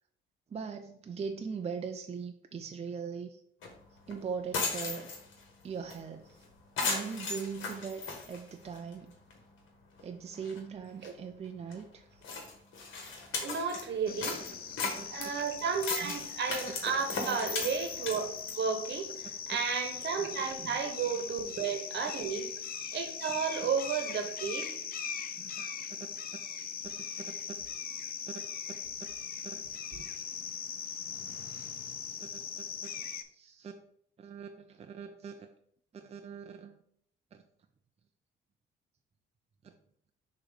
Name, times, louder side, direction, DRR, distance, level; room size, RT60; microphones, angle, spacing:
voice 1, 0.5-3.4 4.1-5.1 5.6-6.4 6.8-9.1 10.0-12.2 14.8-15.1 16.0-16.2 17.2-17.4 20.6-20.8 23.3-23.4 25.4-26.1 26.8-27.6 27.9-29.6 29.9-30.1 32.2-32.9 33.3-33.7 34.2-35.5 35.9-36.8 37.3-37.4 39.6-39.7, right 6 dB, 30° right, 0.5 m, -41 dB
sound 1, 3.6-3.7 4.1-4.2 4.4-5.4 5.9-6.0 6.3-6.4 6.8-8.9 9.3-9.4 10.0-10.1 10.3-10.6 11.0-11.1 11.7-11.8 12.2-13.9 14.2-18.6, left 4 dB, 80° left, 1.5 m, -36 dB
voice 2, 13.4-14.4 15.1-18.3 18.6-22.5 22.9-24.7 29.9-30.0, right 6 dB, 60° right, 1.1 m, -33 dB
sound 2, 14.1-33.2, left 7 dB, 50° left, 0.6 m, -40 dB
6.3 x 3.1 x 4.9 m
cardioid pair, 90°, 20 cm